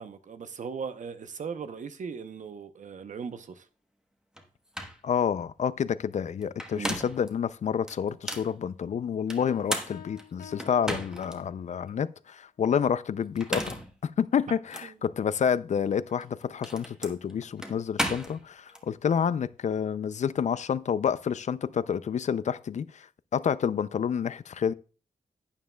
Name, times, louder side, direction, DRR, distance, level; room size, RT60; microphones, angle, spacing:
voice 1, 0.0-3.7 6.7-7.0 14.8-14.9, right 6 dB, 60° right, 0.7 m, -38 dB
sound 1, 4.4-4.5 4.7-5.0 6.4-7.3 7.9-8.5 9.3-11.4 11.9-12.0 13.2-13.9 14.7-14.9 16.1-18.8, equal, 5° right, 1.0 m, -35 dB
voice 2, 5.0-23.1 23.3-24.7, left 7 dB, 55° left, 0.4 m, -29 dB
sound 2, 9.4-11.8, left 10 dB, 80° left, 0.7 m, -49 dB
11.5 x 9.3 x 2.2 m
wide cardioid pair, 160°, 14 cm